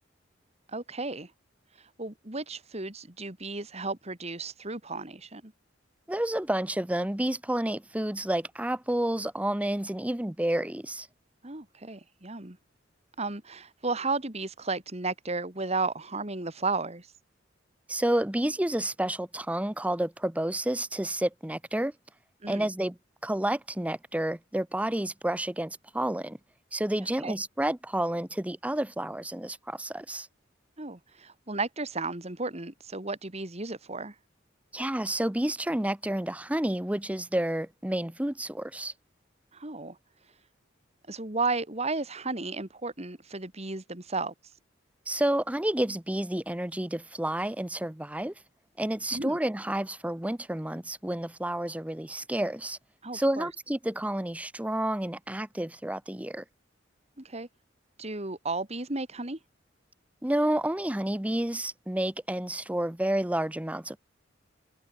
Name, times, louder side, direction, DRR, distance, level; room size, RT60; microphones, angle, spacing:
voice 1, 0.7-1.3 2.0-5.5 11.4-12.6 13.2-17.1 22.4-22.7 27.2-27.3 30.8-34.1 39.5-40.0 41.1-44.3 49.1-49.4 53.0-53.5 57.2-57.5 58.0-59.4, right 3 dB, 35° right, 2.4 m, -33 dB
voice 2, 6.1-11.1 17.9-21.9 22.5-23.0 23.2-26.4 26.7-30.3 34.7-38.9 45.1-48.3 48.8-52.8 53.1-56.4 60.2-64.0, right 1 dB, 5° right, 0.7 m, -30 dB
head